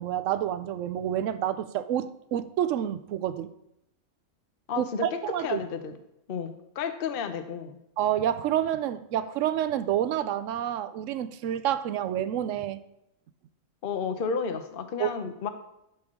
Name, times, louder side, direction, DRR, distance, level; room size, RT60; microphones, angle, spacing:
voice 1, 0.0-3.5 4.8-5.6 8.0-12.8 15.0-15.1, right 11 dB, 65° right, 13 dB, 0.8 m, -28 dB
voice 2, 4.7-5.1 5.4-5.9 6.3-7.8 13.8-15.5, left 6 dB, 50° left, 9 dB, 0.7 m, -32 dB
12.0 x 6.4 x 3.7 m, 0.83 s
omnidirectional pair, 1.6 m